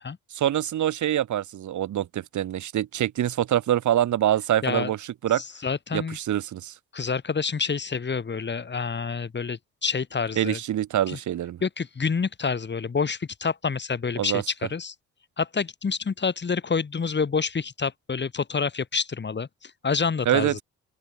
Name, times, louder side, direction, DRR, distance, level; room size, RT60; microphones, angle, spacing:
voice 1, 0.3-5.4 5.9-6.7 10.4-11.6 14.2-14.4 20.3-20.6, right 11 dB, 75° right, 7.5 m, -25 dB
voice 2, 5.6-6.2 6.9-10.6 11.1-11.2 11.6-14.9 15.4-19.5 19.8-20.6, left 5 dB, 35° left, 6.2 m, -27 dB
open air
cardioid pair, 90°, 30 cm